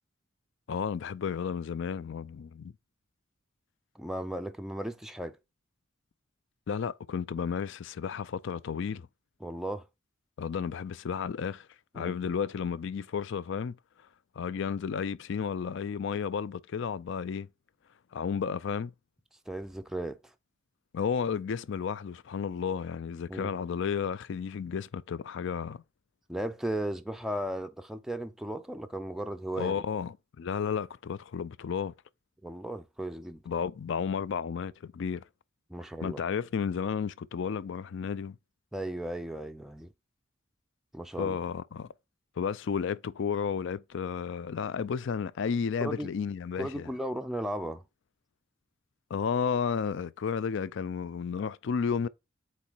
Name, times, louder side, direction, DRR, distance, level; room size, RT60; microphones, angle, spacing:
voice 1, 0.7-2.7 6.7-9.1 10.4-11.7 11.9-13.8 14.4-17.5 18.1-18.9 20.9-25.8 29.6-31.9 33.5-35.2 36.0-38.4 41.2-41.9 42.4-46.9 49.1-52.1, left 6 dB, 65° left, 0.4 m, -32 dB
voice 2, 4.0-5.4 9.4-9.8 11.9-12.2 19.5-20.2 23.3-23.5 26.3-29.8 32.4-33.4 35.7-36.2 38.7-39.9 40.9-41.4 45.8-46.1 46.6-47.8, right 1 dB, ahead, 0.4 m, -36 dB
8.3 x 3.1 x 4.4 m
head